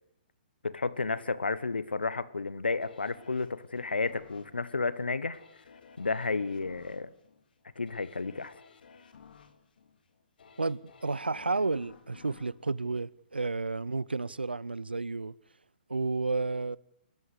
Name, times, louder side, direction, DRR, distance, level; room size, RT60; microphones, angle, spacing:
voice 1, 0.6-5.4 6.0-7.1 7.8-8.5, left 4 dB, 85° left, 1.3 m, -32 dB
sound 1, 2.8-13.8 14.2-14.3, left 6 dB, 65° left, 3.0 m, -56 dB
voice 2, 10.6-15.3 15.9-16.8, right 3 dB, 90° right, 0.8 m, -31 dB
28.5 x 14.5 x 8.3 m
figure-of-eight pair, 125°, 5 cm